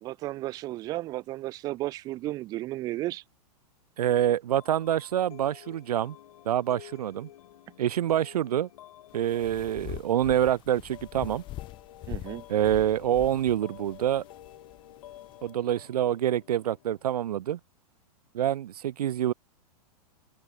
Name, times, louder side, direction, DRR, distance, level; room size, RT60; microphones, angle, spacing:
voice 1, 0.0-3.2 12.1-12.4, right 16 dB, 20° right, 0.6 m, -34 dB
voice 2, 4.0-6.2 6.5-7.3 7.8-8.7 9.1-11.4 12.5-14.2 15.4-17.6 18.3-19.3, right 11 dB, 80° right, 2.3 m, -26 dB
sound 1, 4.6-17.2, left 12 dB, 65° left, 5.1 m, -51 dB
sound 2, 9.1-15.5, left 16 dB, 25° left, 3.6 m, -44 dB
supercardioid pair, 170°, 20 cm